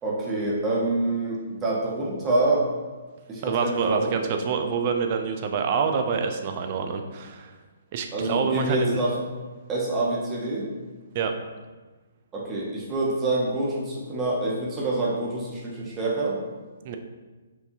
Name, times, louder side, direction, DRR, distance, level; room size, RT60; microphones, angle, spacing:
voice 1, 0.0-2.7 3.3-4.3 8.1-9.2 9.7-10.7 12.3-16.4, right 2 dB, 20° right, -3 dB, 0.8 m, -26 dB
voice 2, 3.5-7.5 7.9-9.0 11.1-11.3 16.8-17.0, right 6 dB, 40° right, 5 dB, 0.4 m, -26 dB
4.5 x 2.6 x 2.7 m, 1.3 s
figure-of-eight pair, 135°, 0 cm